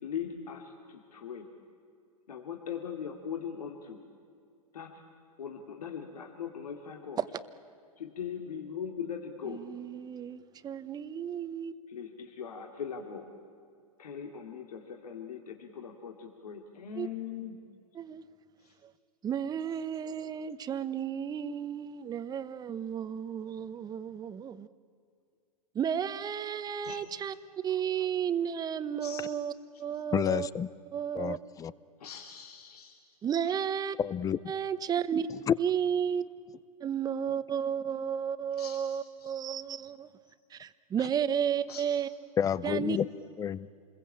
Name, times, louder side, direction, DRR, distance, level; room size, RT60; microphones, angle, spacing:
voice 1, 0.0-1.5 2.3-4.0 4.7-5.0 5.4-7.2 8.0-9.6 11.9-13.3 14.0-17.6 18.6-18.7 26.8-27.0 27.6-27.8 29.0-29.2 29.7-29.8 32.0-33.0 33.4-33.6 38.6-39.4 41.7-41.8, left 7 dB, 85° left, 3 dB, 2.7 m, -40 dB
voice 2, 9.5-11.7 17.0-17.1 18.0-18.2 18.8-18.9 19.2-24.7 25.7-29.5 29.8-30.5 30.9-31.4 33.2-34.0 34.5-35.3 35.6-36.2 36.8-40.1 40.5-42.1 42.6-43.0, right 8 dB, 20° right, 13 dB, 1.0 m, -33 dB
voice 3, 30.1-30.7 31.1-31.7 34.0-34.4 35.5-35.6 42.4-43.1 43.4-43.7, left 9 dB, 20° left, 19 dB, 0.6 m, -29 dB
28.0 x 21.5 x 8.7 m, 2.4 s
hypercardioid pair, 125°, 19 cm